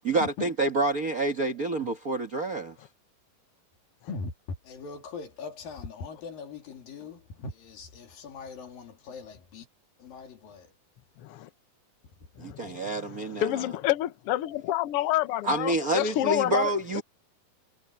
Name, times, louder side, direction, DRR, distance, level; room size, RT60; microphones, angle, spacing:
voice 1, 0.0-2.7 12.4-13.7 15.4-17.0, right 2 dB, 55° right, 0.9 m, -28 dB
voice 2, 4.6-9.7 10.0-10.7 12.6-12.7, left 4 dB, 85° left, 4.8 m, -41 dB
voice 3, 11.2-11.5 12.4-17.0, left 14 dB, 70° left, 1.4 m, -29 dB
omnidirectional pair, 3.9 m